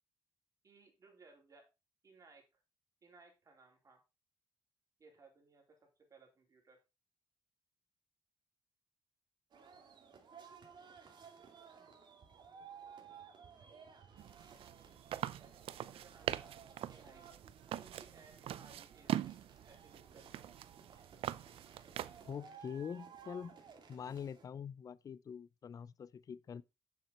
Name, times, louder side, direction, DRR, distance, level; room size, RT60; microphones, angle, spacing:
voice 1, 0.6-1.7 2.0-2.6 3.0-4.0 5.0-6.8 14.6-16.6 16.9-17.2 17.8-19.4 19.7-20.4, right 4 dB, 35° right, 3.8 m, -63 dB
sound 1, 9.5-24.5, right 6 dB, 55° right, 2.5 m, -57 dB
sound 2, 14.2-22.3, right 12 dB, 85° right, 0.5 m, -43 dB
voice 2, 22.2-23.6 23.9-26.6, left 7 dB, 40° left, 0.4 m, -44 dB
9.0 x 7.4 x 4.2 m
cardioid pair, 135°, 9 cm